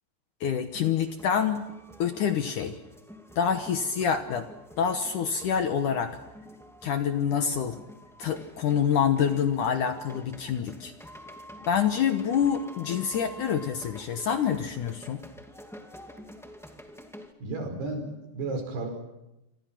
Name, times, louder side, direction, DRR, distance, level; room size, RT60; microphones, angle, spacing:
voice 1, 0.4-1.7 2.0-2.8 3.4-4.5 4.8-6.2 6.8-7.8 8.2-10.9 11.7-15.2, left 8 dB, 65° left, 7 dB, 2.2 m, -26 dB
sound 1, 0.7-17.3, equal, ahead, 0.6 m, -48 dB
voice 2, 17.4-18.9, right 2 dB, 75° right, 5 dB, 7.0 m, -33 dB
28.0 x 26.0 x 6.0 m, 0.91 s
omnidirectional pair, 4.8 m